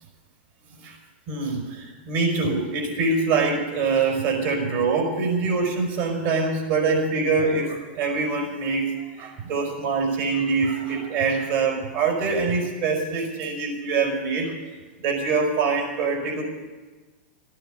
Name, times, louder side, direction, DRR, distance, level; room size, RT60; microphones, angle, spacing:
voice 1, 1.3-14.5 15.0-16.4, right 4 dB, 55° right, 1 dB, 5.0 m, -24 dB
14.0 x 9.3 x 9.3 m, 1.3 s
hypercardioid pair, 125°, 6 cm